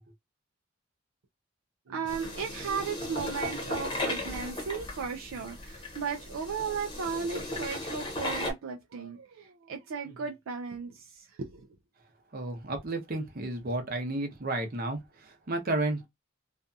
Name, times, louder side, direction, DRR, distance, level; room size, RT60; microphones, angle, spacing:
voice 1, 1.9-11.7, right 5 dB, 75° right, 0.4 m, -36 dB
sound 1, 2.1-8.5, left 1 dB, 25° left, 0.9 m, -36 dB
voice 2, 12.3-16.1, right 2 dB, 50° right, 0.7 m, -32 dB
2.5 x 2.3 x 2.6 m
head